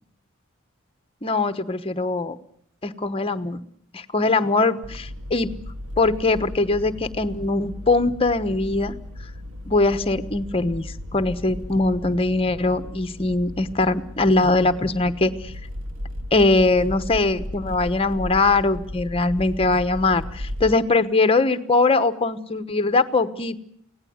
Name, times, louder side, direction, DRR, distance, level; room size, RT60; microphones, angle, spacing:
voice 1, 1.2-2.4 2.8-3.6 3.9-5.5 6.0-8.9 9.7-15.5 16.3-23.6, left 3 dB, 25° left, 11 dB, 1.1 m, -21 dB
sound 1, 4.8-20.7, left 1 dB, 70° right, 1.7 m, -36 dB
24.5 x 17.5 x 9.4 m, 0.70 s
head